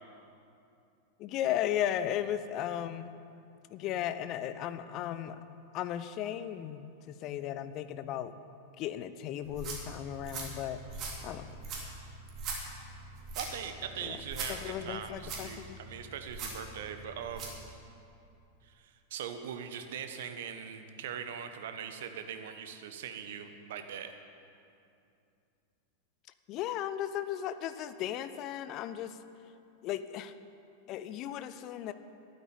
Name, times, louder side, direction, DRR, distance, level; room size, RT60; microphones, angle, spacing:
voice 1, 1.2-3.1 3.7-8.3 8.8-10.8 11.2-11.6 14.0-14.2 14.5-15.8 26.5-29.2 29.8-30.3 30.9-31.9, left 11 dB, 40° left, 12 dB, 0.7 m, -36 dB
sound 1, 9.4-17.6, right 3 dB, 35° right, 3.3 m, -42 dB
voice 2, 13.3-17.6 18.6-24.1, right 8 dB, 55° right, 8 dB, 1.2 m, -41 dB
12.5 x 9.7 x 8.8 m, 2.6 s
figure-of-eight pair, 90°, 0 cm